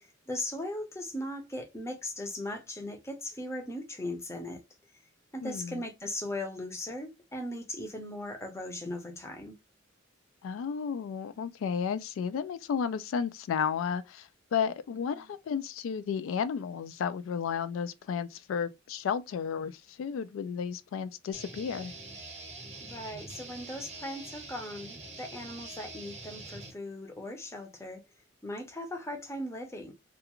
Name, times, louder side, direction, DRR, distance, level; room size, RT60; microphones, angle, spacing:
voice 1, 0.0-4.6 5.3-9.5 15.1-15.3 22.8-28.0 28.4-29.9, left 1 dB, 15° left, 0.6 m, -38 dB
voice 2, 5.4-5.8 10.4-21.9, left 7 dB, 85° left, 0.3 m, -33 dB
sound 1, 21.3-26.7, right 2 dB, 35° right, 0.7 m, -45 dB
2.4 x 2.3 x 2.9 m
head